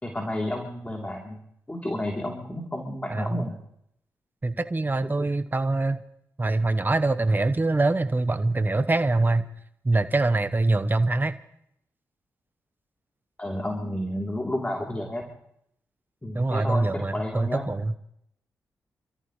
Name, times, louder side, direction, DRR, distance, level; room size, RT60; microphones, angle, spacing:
voice 1, 0.0-1.4 1.7-3.6 5.0-5.3 13.4-15.2 16.2-17.7, left 1 dB, 20° left, 0 dB, 3.3 m, -31 dB
voice 2, 3.1-3.5 4.4-6.0 6.4-9.5 9.8-11.4 16.3-17.9, right 2 dB, 25° right, 10 dB, 1.1 m, -24 dB
28.5 x 14.0 x 3.2 m, 0.74 s
supercardioid pair, 45°, 7 cm